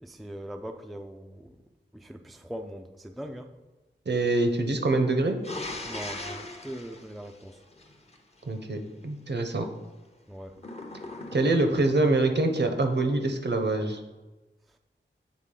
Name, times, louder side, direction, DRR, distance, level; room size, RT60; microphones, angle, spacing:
voice 1, 0.0-1.6 1.9-3.5 5.8-7.6 10.3-10.5, equal, ahead, 5 dB, 0.4 m, -41 dB
voice 2, 4.1-5.4 8.5-8.8 9.0-9.7 11.3-14.0, right 2 dB, 60° right, 6 dB, 0.7 m, -25 dB
sound 1, 5.4-8.2 10.6-12.0, left 2 dB, 30° left, 0.8 m, -39 dB
7.9 x 3.6 x 3.8 m, 1.1 s
wide cardioid pair, 55°, 20 cm